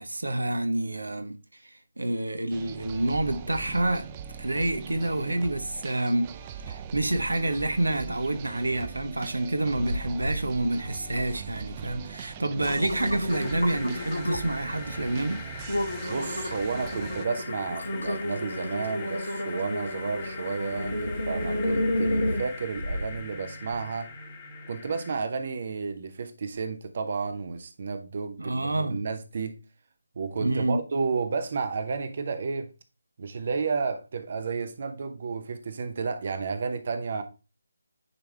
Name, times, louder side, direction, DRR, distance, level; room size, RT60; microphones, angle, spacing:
voice 1, 0.0-1.4 1.6-4.1 4.4-6.3 6.7-15.4 28.4-29.0 30.4-30.8, right 1 dB, 75° right, 0.8 m, -28 dB
sound 1, 2.5-17.3, right 7 dB, 20° right, 0.4 m, -41 dB
sound 2, 9.7-10.4 10.8-11.3 11.8-12.0 12.4-14.6 15.1-15.3 15.7-23.2 23.7-23.8, left 1 dB, 80° left, 1.5 m, -31 dB
sound 3, 13.3-25.2, left 4 dB, 25° left, 1.2 m, -42 dB
voice 2, 16.0-24.1 24.7-29.5 30.2-32.7 33.2-37.2, right 4 dB, 45° right, 0.8 m, -32 dB
9.7 x 3.5 x 3.3 m
figure-of-eight pair, 155°, 0 cm